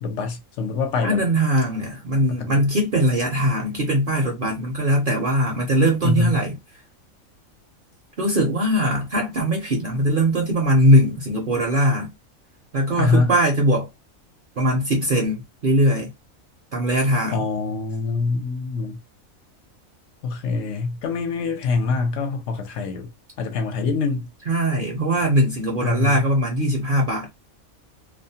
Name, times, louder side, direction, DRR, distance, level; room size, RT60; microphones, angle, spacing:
voice 1, 0.0-1.2 2.3-2.6 6.0-6.4 13.0-13.3 17.3-19.0 20.2-23.1 23.4-24.3 25.8-26.3, left 4 dB, 70° left, 0.9 m, -24 dB
voice 2, 1.0-6.6 8.2-12.1 12.7-13.9 14.6-16.1 16.7-17.5 24.5-27.3, equal, 55° right, 0.6 m, -20 dB
2.5 x 2.0 x 2.7 m
omnidirectional pair, 1.4 m